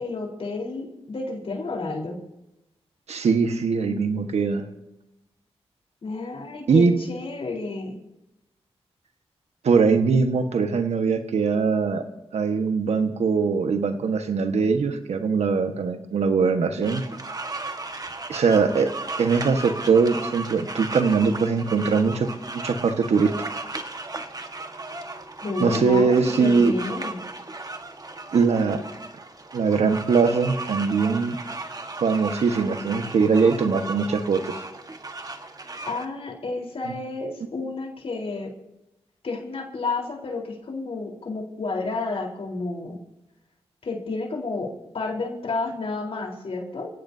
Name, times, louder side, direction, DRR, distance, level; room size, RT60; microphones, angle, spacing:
voice 1, 0.0-2.2 6.0-8.0 25.4-27.2 35.9-38.5 39.2-43.0 43.8-46.9, left 3 dB, 65° left, 0 dB, 4.2 m, -31 dB
voice 2, 3.1-4.6 6.7-6.9 9.6-12.0 12.3-17.0 18.3-18.9 19.2-22.3 22.5-23.3 25.6-26.7 28.3-28.8 29.5-31.4 32.0-34.6 36.9-37.0, right 5 dB, 85° right, 7 dB, 1.5 m, -21 dB
sound 1, 16.8-36.0, right 2 dB, 35° right, 1.6 m, -36 dB
28.0 x 16.5 x 2.8 m, 0.92 s
cardioid pair, 65°, 11 cm